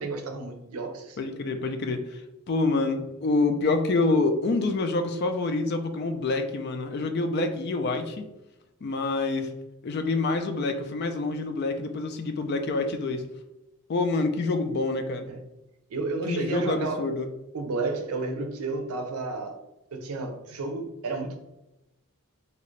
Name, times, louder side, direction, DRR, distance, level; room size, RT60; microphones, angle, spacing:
voice 1, 0.0-1.2 15.3-15.4 15.9-17.1 17.5-19.6 19.9-21.4, right 3 dB, 90° right, 0.5 m, -31 dB
voice 2, 1.2-2.2 2.5-8.3 8.8-9.5 9.8-13.2 13.9-15.3 16.3-17.3, left 3 dB, 50° left, 0.3 m, -27 dB
2.8 x 2.5 x 3.1 m
head